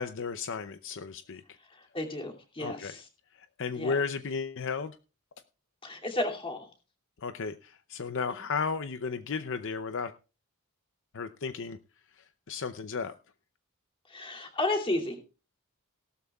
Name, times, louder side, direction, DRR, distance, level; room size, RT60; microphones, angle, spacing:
voice 1, 0.0-1.4 2.6-2.9 3.3-5.0 7.2-10.1 11.1-11.8 12.2-13.1, left 5 dB, 55° left, 10 dB, 0.6 m, -34 dB
voice 2, 1.6-3.1 3.7-3.9 5.8-6.7 8.3-8.4 14.1-15.2, left 2 dB, 25° left, 1 dB, 2.6 m, -33 dB
17.5 x 12.5 x 2.4 m, 0.33 s
head